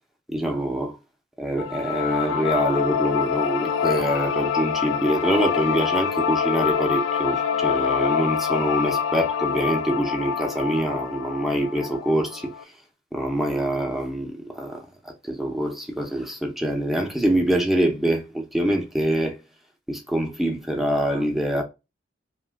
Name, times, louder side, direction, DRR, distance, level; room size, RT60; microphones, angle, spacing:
voice 1, 0.3-1.0 1.4-12.5 13.1-14.8 15.2-19.4 19.9-21.6, right 1 dB, ahead, 0.5 m, -25 dB
sound 1, 1.6-12.6, left 7 dB, 90° left, 0.3 m, -25 dB
2.7 x 2.2 x 3.3 m
head